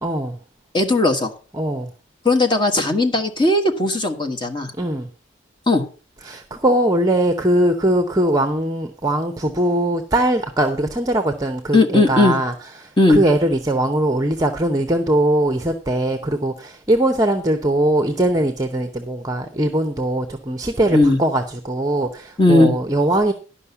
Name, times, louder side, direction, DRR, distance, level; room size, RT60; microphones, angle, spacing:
voice 1, 0.0-0.4 1.5-1.9 4.8-5.1 6.2-12.5 12.8-23.3, right 1 dB, 15° right, 0.8 m, -20 dB
voice 2, 0.7-1.3 2.2-4.7 5.7-5.8 11.7-12.4 13.0-13.2 20.9-21.2 22.4-22.7, left 2 dB, 25° left, 1.4 m, -17 dB
11.5 x 5.6 x 6.9 m
head